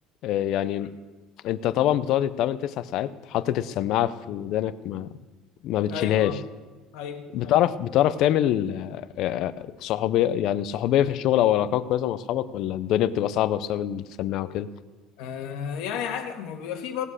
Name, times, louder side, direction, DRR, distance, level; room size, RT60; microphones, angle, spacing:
voice 1, 0.2-0.9 1.4-5.1 5.6-6.4 7.3-14.7, left 12 dB, 50° left, 15 dB, 0.6 m, -25 dB
voice 2, 5.9-6.4 6.9-7.3 15.2-17.1, left 8 dB, 75° left, 5 dB, 1.6 m, -32 dB
18.0 x 7.5 x 6.5 m, 1.3 s
cardioid pair, 170°, 0 cm